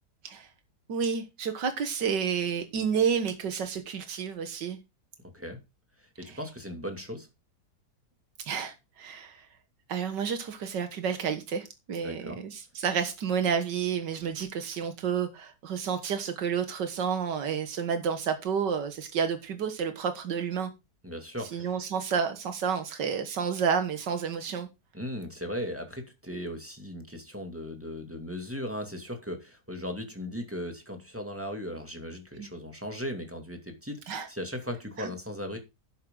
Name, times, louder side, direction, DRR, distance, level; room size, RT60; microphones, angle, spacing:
voice 1, 0.9-4.8 6.3-6.4 8.5-9.5 9.9-20.7 21.5-24.7 32.4-32.5 34.1-34.3 35.0-35.1, right 7 dB, 85° right, 2.0 m, -30 dB
voice 2, 6.2-7.3 12.0-12.4 21.0-21.7 24.9-35.6, equal, 5° right, 2.5 m, -37 dB
11.0 x 9.5 x 3.9 m
omnidirectional pair, 1.8 m